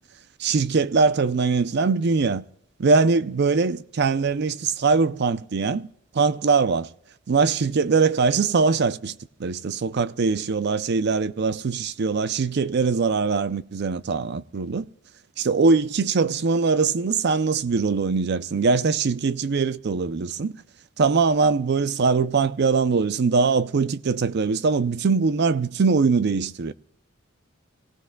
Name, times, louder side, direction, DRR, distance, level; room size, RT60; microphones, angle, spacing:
voice 1, 0.4-2.4 2.8-5.9 6.1-6.9 7.3-14.9 15.4-20.5 21.0-26.7, right 4 dB, 55° right, 0.5 m, -22 dB
26.0 x 17.5 x 2.2 m
head